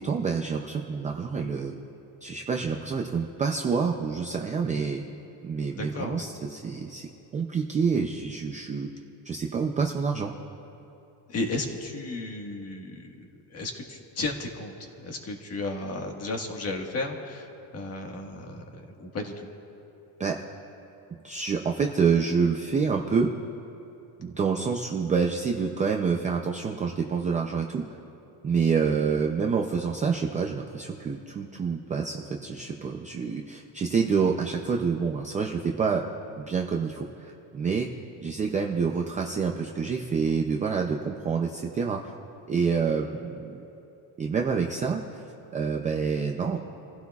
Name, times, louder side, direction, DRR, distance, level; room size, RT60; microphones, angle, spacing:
voice 1, 0.0-1.7 2.2-5.0 5.4-8.9 9.2-10.3 20.2-20.4 21.2-23.3 24.2-27.9 28.4-36.0 36.4-37.9 38.2-42.1 42.5-43.7 44.2-45.2 45.5-46.6, right 5 dB, 15° right, 1 dB, 0.4 m, -27 dB
voice 2, 5.7-6.3 11.3-17.5 17.7-19.5, left 2 dB, 30° left, 2 dB, 1.6 m, -34 dB
29.5 x 15.5 x 2.4 m, 2.9 s
cardioid pair, 165°, 48 cm